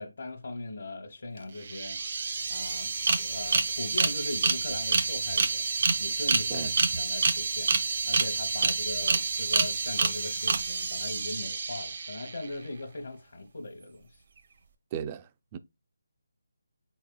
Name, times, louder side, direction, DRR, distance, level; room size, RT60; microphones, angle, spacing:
voice 1, 0.0-6.7 7.0-14.2, left 2 dB, 65° left, 0.9 m, -39 dB
sound 1, 1.4-1.5 1.6-12.5, right 4 dB, 50° right, 0.7 m, -28 dB
voice 2, 14.9-15.6, right 8 dB, 25° right, 0.3 m, -36 dB
4.5 x 4.1 x 2.2 m
figure-of-eight pair, 160°, 0 cm